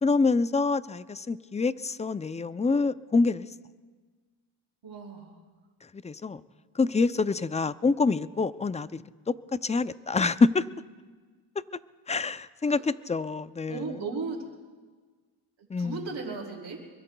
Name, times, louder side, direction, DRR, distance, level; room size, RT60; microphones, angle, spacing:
voice 1, 0.0-3.5 5.9-6.4 6.8-9.3 9.6-10.7 12.1-13.9 15.7-16.0, left 4 dB, 15° left, 15 dB, 0.3 m, -26 dB
voice 2, 4.8-5.4 12.6-12.8 13.7-14.4 14.7-14.8 15.6-16.8, right 4 dB, 70° right, -5 dB, 3.2 m, -36 dB
24.5 x 23.0 x 2.3 m, 1.4 s
cardioid pair, 70°, 48 cm